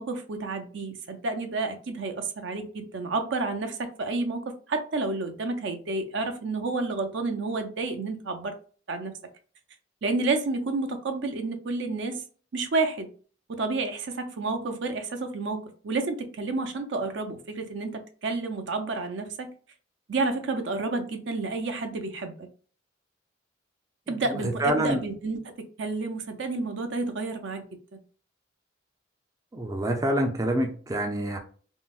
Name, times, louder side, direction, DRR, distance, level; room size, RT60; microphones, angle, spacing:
voice 1, 0.0-8.5 8.9-9.1 10.0-12.2 12.5-13.1 13.5-19.5 20.1-22.3 24.1-25.4 25.8-27.6, right 3 dB, 70° right, 0.5 m, -30 dB
voice 2, 24.6-25.0 29.5-31.4, right 1 dB, 20° right, 0.4 m, -26 dB
3.7 x 2.0 x 2.4 m
head